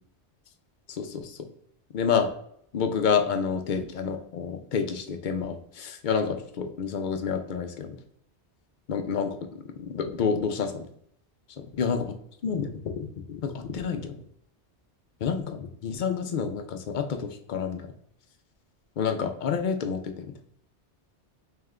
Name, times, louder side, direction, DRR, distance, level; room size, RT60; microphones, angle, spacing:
voice 1, 1.0-1.3 1.9-2.3 2.7-7.9 8.9-10.9 11.8-12.0 12.4-14.2 15.2-17.9 19.0-20.3, left 6 dB, 55° left, 7 dB, 0.5 m, -29 dB
3.4 x 3.3 x 3.6 m, 0.69 s
omnidirectional pair, 1.2 m